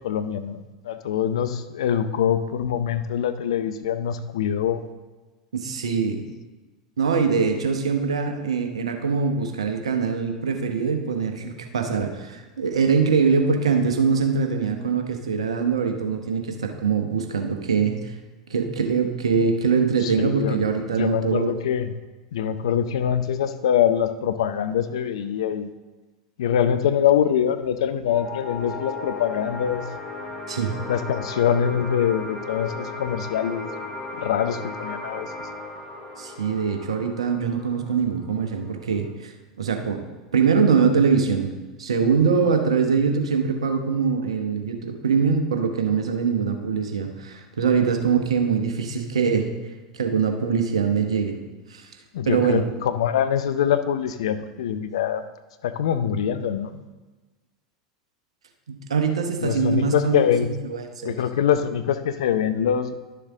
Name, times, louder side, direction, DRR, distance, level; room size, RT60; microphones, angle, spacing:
voice 1, 0.0-4.8 20.0-20.6 20.9-21.9 22.3-25.7 26.4-29.8 30.9-33.7 34.2-35.5 52.1-55.2 55.6-56.8 59.4-60.5 61.0-63.0, left 9 dB, 65° left, 11 dB, 0.5 m, -24 dB
voice 2, 5.5-6.2 7.0-18.1 18.5-21.5 30.5-30.7 36.2-39.3 39.6-40.0 40.3-41.5 41.8-49.5 49.9-51.4 51.7-51.9 52.3-52.6 58.7-61.2, right 5 dB, 75° right, 5 dB, 1.0 m, -23 dB
sound 1, 28.1-39.1, left 3 dB, 20° left, 1.7 m, -36 dB
11.0 x 6.8 x 3.6 m, 1.2 s
figure-of-eight pair, 85°, 3 cm